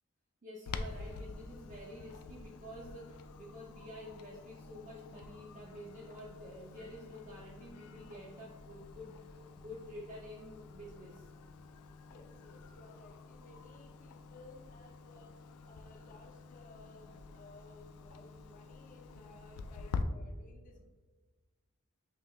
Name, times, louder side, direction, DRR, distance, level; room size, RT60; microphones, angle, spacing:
voice 1, 0.4-11.3 18.1-18.2, left 1 dB, 35° right, -4 dB, 0.5 m, -49 dB
Clock, 0.6-20.0, left 4 dB, 90° left, 0.3 m, -48 dB
voice 2, 12.1-20.9, left 2 dB, 35° left, 2 dB, 0.5 m, -57 dB
5.4 x 2.2 x 3.0 m, 1.3 s
head